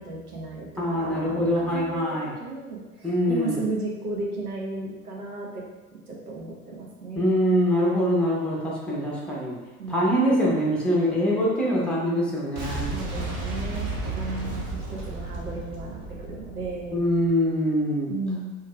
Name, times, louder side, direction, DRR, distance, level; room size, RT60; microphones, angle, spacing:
voice 1, 0.0-5.6 5.9-7.5 9.8-10.2 12.9-17.0 18.1-18.6, right 2 dB, 75° right, -2 dB, 1.0 m, -35 dB
voice 2, 0.8-2.3 3.0-3.6 7.1-9.6 9.9-12.9 16.9-18.1, equal, ahead, -5 dB, 0.8 m, -24 dB
Boom, 12.6-17.5, right 3 dB, 35° right, 0.9 m, -33 dB
4.5 x 3.2 x 2.3 m, 1.2 s
figure-of-eight pair, 80°, 46 cm